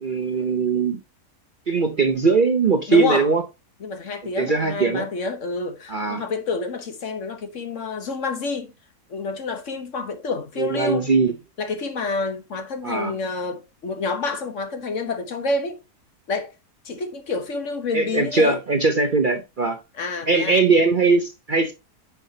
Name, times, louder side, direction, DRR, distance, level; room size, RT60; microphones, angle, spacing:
voice 1, 0.0-1.0 1.7-3.4 4.4-5.1 5.9-6.2 10.6-11.3 12.8-13.1 17.9-19.8 20.3-21.7, right 4 dB, 45° right, 0.7 m, -20 dB
voice 2, 2.9-3.3 3.8-8.7 9.1-11.1 11.6-15.8 16.3-16.5 16.8-18.6 19.9-20.6, left 3 dB, 55° left, 1.4 m, -28 dB
9.0 x 5.9 x 2.8 m
omnidirectional pair, 1.6 m